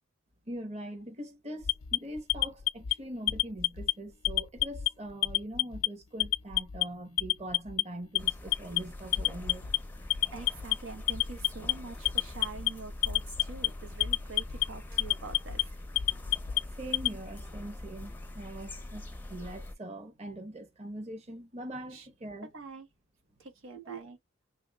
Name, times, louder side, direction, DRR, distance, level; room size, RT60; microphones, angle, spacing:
voice 1, 0.5-9.6 16.7-22.5 23.7-24.0, right 1 dB, 35° right, 0.8 m, -42 dB
Alarm, 1.6-2.9 3.3-3.9 4.2-4.9 5.2-5.9 6.2-6.8 7.2-7.8 8.2-8.8 9.1-9.8 10.1-10.7 11.1-11.7 12.1-12.7 13.0-13.7 14.0-14.6 15.0-15.6 16.0-17.1, left 17 dB, 80° left, 0.4 m, -27 dB
sound 1, 8.2-19.7, left 1 dB, 10° left, 0.5 m, -44 dB
voice 2, 10.3-15.7 21.9-22.1 22.5-22.9 23.4-24.2, right 4 dB, 90° right, 1.0 m, -45 dB
3.5 x 3.0 x 2.2 m
head